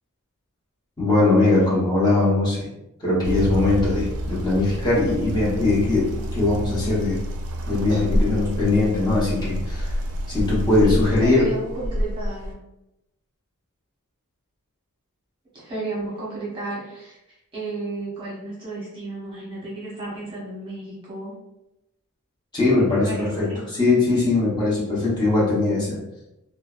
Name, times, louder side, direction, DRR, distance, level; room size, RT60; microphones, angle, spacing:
voice 1, 1.0-2.7 3.0-7.2 7.7-9.9 10.3-11.5 22.5-26.0, left 2 dB, 20° left, -7 dB, 0.8 m, -21 dB
sound 1, 3.2-12.5, equal, 90° right, 0.4 m, -28 dB
voice 2, 10.8-12.6 15.5-17.2 17.5-21.3 22.8-23.6, right 2 dB, 25° right, -7 dB, 0.9 m, -33 dB
2.6 x 2.1 x 2.3 m, 0.91 s
head